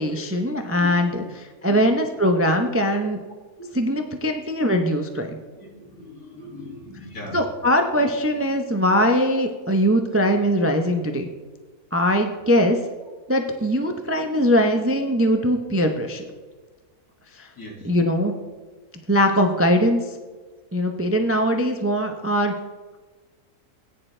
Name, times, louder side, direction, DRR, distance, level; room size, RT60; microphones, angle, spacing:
voice 1, 0.0-3.2 3.7-5.4 7.3-11.3 11.9-12.8 13.3-16.2 17.4-17.5 17.8-18.3 19.1-20.0 20.7-22.5, equal, 20° right, 5 dB, 0.4 m, -21 dB
voice 2, 0.7-1.3 1.7-2.2 3.6-3.7 5.6-7.5 7.9-8.0 8.7-8.8 15.4-15.5 17.6-17.9, left 2 dB, 80° left, -1 dB, 2.9 m, -40 dB
15.5 x 9.6 x 3.3 m, 1.3 s
omnidirectional pair, 1.6 m